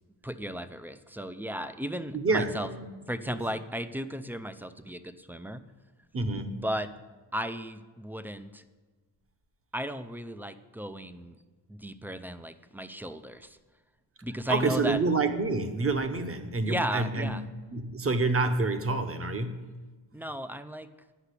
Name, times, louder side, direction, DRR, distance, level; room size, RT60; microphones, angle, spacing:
voice 1, 0.2-2.7 3.1-5.6 6.5-6.9 7.3-8.6 9.7-11.4 11.7-13.6 14.2-15.0 16.7-17.4 20.1-20.9, equal, 5° right, 11 dB, 0.4 m, -35 dB
voice 2, 2.1-2.9 3.3-3.4 6.1-6.6 14.5-17.4 17.7-19.7, right 3 dB, 30° right, 8 dB, 1.0 m, -28 dB
10.0 x 5.8 x 8.2 m, 1.3 s
cardioid pair, 105°, 48 cm